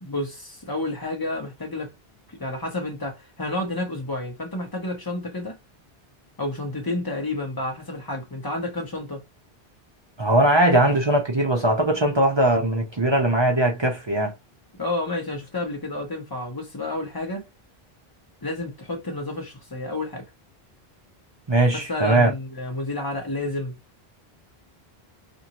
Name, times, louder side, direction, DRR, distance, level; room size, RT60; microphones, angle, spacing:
voice 1, 0.0-1.9 2.3-5.6 6.4-9.2 14.8-17.5 18.4-20.3 21.7-23.7, left 2 dB, 20° left, 1.0 m, -30 dB
voice 2, 10.2-14.3 21.5-22.3, right 1 dB, 35° right, 0.6 m, -20 dB
2.6 x 2.6 x 2.9 m
omnidirectional pair, 1.0 m